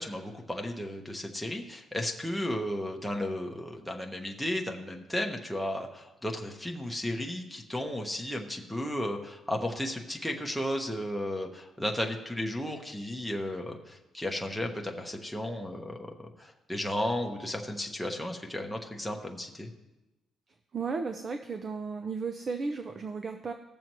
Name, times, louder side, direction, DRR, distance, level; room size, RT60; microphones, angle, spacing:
voice 1, 0.0-19.7, left 1 dB, ahead, 0 dB, 1.1 m, -34 dB
voice 2, 20.7-23.5, right 4 dB, 30° right, 7 dB, 0.6 m, -34 dB
19.0 x 7.1 x 3.1 m, 1.0 s
cardioid pair, 145°, 0 cm